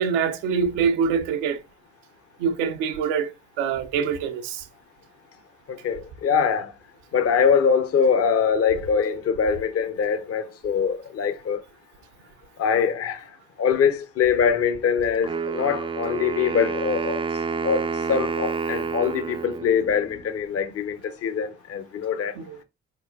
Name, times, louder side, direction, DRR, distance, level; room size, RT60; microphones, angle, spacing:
voice 1, 0.0-1.6 2.4-3.3 3.6-4.6 22.3-22.6, right 6 dB, 75° right, 0.6 m, -24 dB
voice 2, 5.7-6.7 7.1-11.6 12.6-13.3 13.6-17.2 17.6-22.3, left 6 dB, 45° left, 0.7 m, -23 dB
Wind instrument woodwind instrument, 15.2-20.2, right 5 dB, 15° right, 0.4 m, -29 dB
4.2 x 3.7 x 2.3 m
hypercardioid pair, 45°, 34 cm